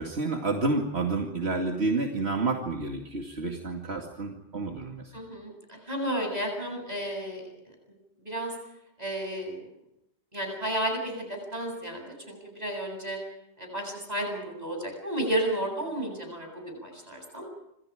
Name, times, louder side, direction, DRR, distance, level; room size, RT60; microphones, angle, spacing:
voice 1, 0.0-5.0, right 3 dB, 75° right, 2 dB, 2.6 m, -29 dB
voice 2, 5.1-7.4 8.2-8.5 9.0-9.7 10.3-13.2 13.6-17.4, right 1 dB, 40° right, 3 dB, 8.1 m, -32 dB
27.0 x 26.5 x 5.0 m, 0.83 s
omnidirectional pair, 1.1 m